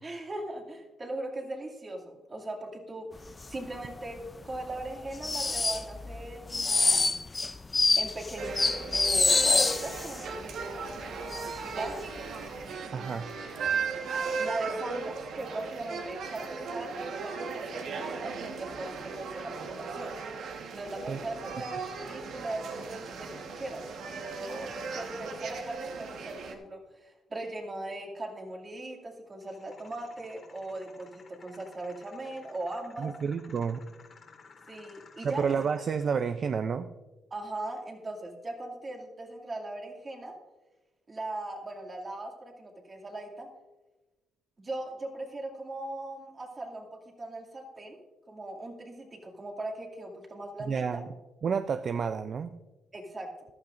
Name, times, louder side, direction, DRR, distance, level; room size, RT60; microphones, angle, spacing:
voice 1, 0.0-3.1 3.5-4.2 4.4-7.2 8.0-12.0 14.4-20.2 20.7-33.1 34.7-35.6 37.3-40.3 41.1-43.5 44.6-48.0 48.3-51.0 52.9-53.3, right 2 dB, 30° right, 1 dB, 2.3 m, -39 dB
sound 1, 3.4-3.7 3.9-4.1 4.5-10.2 10.6-10.7 11.0-11.6 11.9-12.2 12.6-12.7, left 3 dB, 25° left, 0.5 m, -26 dB
sound 2, 8.4-26.6, right 5 dB, 70° right, 1.3 m, -37 dB
voice 2, 12.9-13.3 21.1-21.2 33.0-33.8 35.2-36.9 50.7-51.1 51.4-52.5, right 6 dB, 50° right, 10 dB, 0.4 m, -30 dB
sound 3, 29.4-36.4, left 4 dB, 45° left, 2.3 m, -56 dB
14.5 x 12.0 x 2.6 m, 1.1 s
cardioid pair, 90°, 0 cm